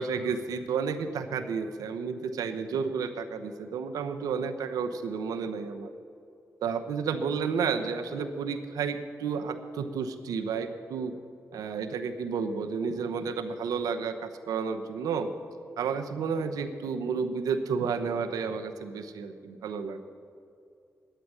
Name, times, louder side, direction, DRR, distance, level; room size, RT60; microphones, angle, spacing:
voice 1, 0.0-5.9 6.6-11.1 11.5-15.3 15.8-20.0, right 5 dB, 90° right, 8 dB, 0.8 m, -31 dB
10.0 x 8.9 x 9.7 m, 2.5 s
cardioid pair, 50°, 6 cm